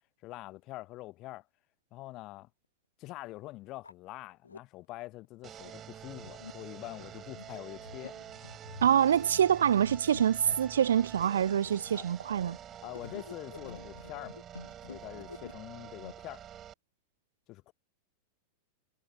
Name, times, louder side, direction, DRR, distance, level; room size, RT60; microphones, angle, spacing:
voice 1, 0.2-1.4 1.9-2.5 3.0-8.2 10.5-10.6 11.9-12.1 12.4-12.6 12.8-14.4 14.9-16.4 17.5-17.7, left 18 dB, 40° left, 0.9 m, -45 dB
sound 1, 2.4-2.5 3.2-3.3 3.6-4.6 5.2-16.1, left 4 dB, 75° left, 2.8 m, -49 dB
sound 2, 5.4-16.7, right 10 dB, 25° right, 1.5 m, -48 dB
voice 2, 8.8-12.6, right 9 dB, 65° right, 0.3 m, -25 dB
figure-of-eight pair, 90°, 0 cm